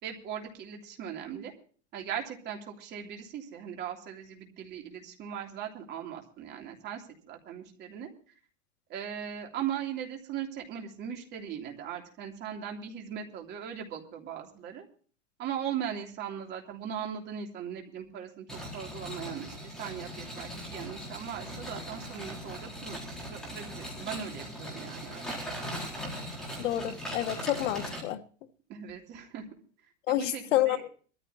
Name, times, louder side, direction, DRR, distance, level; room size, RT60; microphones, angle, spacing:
voice 1, 0.0-1.5 1.9-8.1 8.9-14.8 15.4-25.2 28.7-29.5 30.1-30.8, right 9 dB, 25° right, 3.1 m, -39 dB
sound 1, 18.5-28.0, equal, ahead, 4.2 m, -40 dB
voice 2, 26.6-28.2 30.1-30.9, left 13 dB, 70° left, 1.5 m, -29 dB
23.0 x 14.0 x 2.9 m
supercardioid pair, 170°, 38 cm